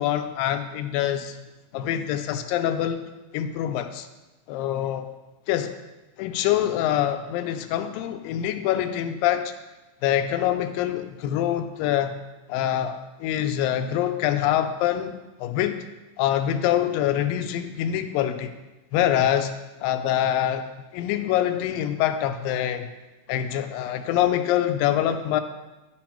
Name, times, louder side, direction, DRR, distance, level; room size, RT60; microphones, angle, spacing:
voice 1, 0.0-1.4 1.7-3.0 3.3-4.1 4.5-5.1 5.5-5.8 6.2-9.5 10.0-12.1 12.5-15.8 16.2-18.5 18.9-19.5 19.8-20.6 20.9-22.9 23.3-25.4, left 11 dB, 80° left, 9 dB, 2.2 m, -25 dB
11.0 x 6.0 x 4.4 m, 1.1 s
omnidirectional pair, 4.2 m